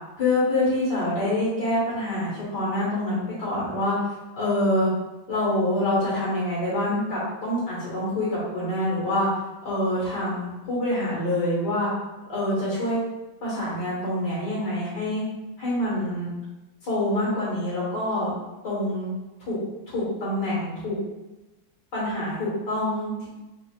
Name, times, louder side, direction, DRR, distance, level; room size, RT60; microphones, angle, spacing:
voice 1, 0.2-4.0 4.3-4.9 5.3-9.3 9.6-11.9 12.3-13.0 13.4-15.2 15.6-16.3 16.8-18.3 18.6-19.1 19.4-19.6 19.9-21.0 21.9-23.3, left 1 dB, 65° left, -7 dB, 2.3 m, -26 dB
5.4 x 3.6 x 2.5 m, 1.1 s
omnidirectional pair, 2.0 m